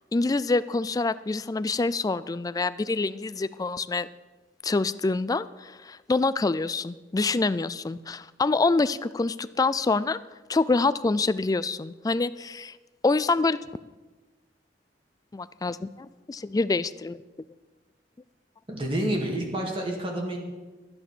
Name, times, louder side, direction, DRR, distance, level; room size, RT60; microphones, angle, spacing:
voice 1, 0.1-4.1 4.6-10.2 10.5-12.8 13.0-13.6 15.3-17.2, left 3 dB, 20° left, 15 dB, 0.3 m, -26 dB
voice 2, 18.7-20.4, right 1 dB, 30° right, 0 dB, 2.1 m, -28 dB
11.5 x 10.5 x 6.1 m, 1.2 s
head